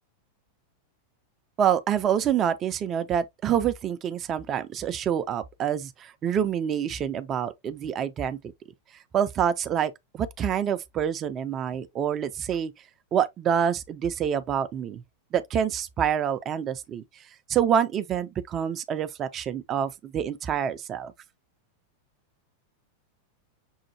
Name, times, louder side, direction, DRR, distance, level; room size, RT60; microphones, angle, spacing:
voice 1, 1.6-8.4 9.1-12.7 13.1-15.0 15.3-17.0 17.5-21.1, right 9 dB, 30° right, 0.5 m, -27 dB
6.3 x 2.2 x 2.8 m
figure-of-eight pair, 90°, 0 cm